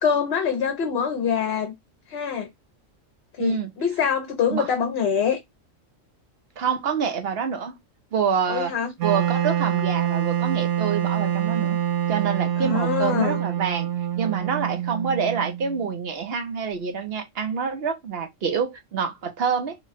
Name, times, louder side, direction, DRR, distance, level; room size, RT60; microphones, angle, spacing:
voice 1, 0.0-1.7 2.1-2.5 3.4-5.4 8.5-8.9 12.6-13.4, left 7 dB, 55° left, 0.9 m, -24 dB
voice 2, 3.4-3.7 4.5-4.7 6.6-7.7 8.1-8.7 9.0-11.8 12.1-13.9 14.2-19.8, right 6 dB, 55° right, 0.9 m, -27 dB
Wind instrument woodwind instrument, 9.0-16.0, right 11 dB, 75° right, 1.1 m, -25 dB
3.0 x 2.3 x 4.0 m
omnidirectional pair, 1.3 m